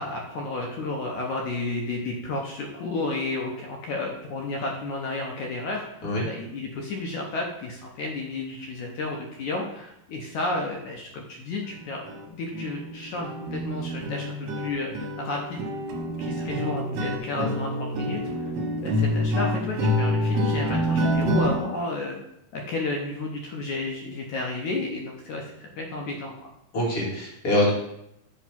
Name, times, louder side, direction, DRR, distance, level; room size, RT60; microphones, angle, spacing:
voice 1, 0.0-15.7 16.0-18.2 18.8-22.2 22.5-26.5, left 2 dB, 75° left, 0 dB, 1.8 m, -32 dB
sound 1, 11.6-11.8 12.1-12.3 12.5-21.6, equal, 70° right, 1.6 m, -27 dB
voice 2, 26.7-27.7, left 1 dB, 40° left, -4 dB, 2.5 m, -24 dB
8.1 x 3.2 x 5.9 m, 0.81 s
omnidirectional pair, 4.5 m